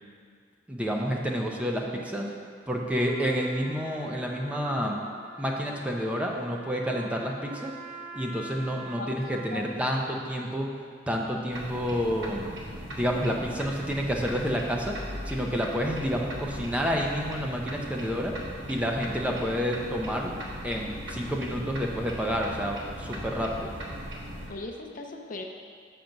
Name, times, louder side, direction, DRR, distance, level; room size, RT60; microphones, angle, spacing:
voice 1, 0.7-2.3 2.7-5.0 5.4-7.7 8.1-10.7 11.1-12.4 12.9-15.0 15.3-18.3 18.7-20.3 20.6-23.7, equal, 5° right, 0 dB, 0.6 m, -29 dB
Trumpet, 2.9-9.8, right 2 dB, 40° right, 2.1 m, -45 dB
voice 2, 9.5-9.9 24.5-25.4, left 2 dB, 45° left, 3 dB, 0.6 m, -38 dB
sound 1, 11.5-24.5, equal, 80° right, 1.3 m, -39 dB
6.6 x 5.9 x 5.2 m, 2.1 s
head